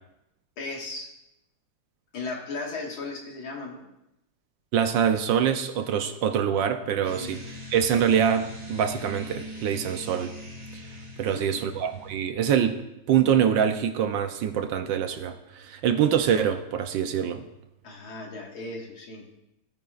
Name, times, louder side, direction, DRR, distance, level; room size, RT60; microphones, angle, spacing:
voice 1, 0.6-1.1 2.1-3.9 7.2-7.3 11.2-11.7 17.8-19.3, left 3 dB, 80° left, -1 dB, 2.6 m, -36 dB
voice 2, 4.7-7.4 7.7-10.3 10.7-10.8 11.2-12.8 13.1-17.4, right 8 dB, 75° right, 7 dB, 1.3 m, -24 dB
sound 1, 7.0-12.1, left 1 dB, 25° right, 2.7 m, -41 dB
17.0 x 9.0 x 2.5 m, 0.86 s
omnidirectional pair, 2.2 m